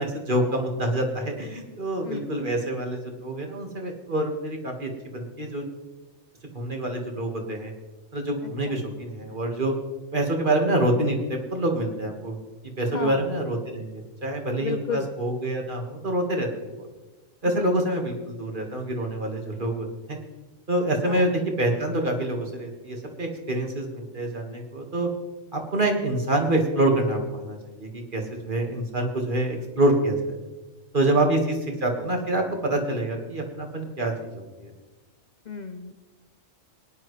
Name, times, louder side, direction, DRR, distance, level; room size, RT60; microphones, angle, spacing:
voice 1, 0.0-5.7 6.5-7.7 8.1-9.7 10.1-12.3 12.8-16.5 16.8-16.9 17.4-20.2 20.7-25.1 25.5-30.2 30.9-34.7, right 1 dB, 40° right, 2 dB, 1.8 m, -26 dB
voice 2, 12.9-13.3 14.6-15.1 17.5-17.7 21.1-21.3 31.2-31.4 35.5-35.9, left 5 dB, 50° left, 7 dB, 0.5 m, -33 dB
21.0 x 10.5 x 3.2 m, 1.2 s
omnidirectional pair, 1.4 m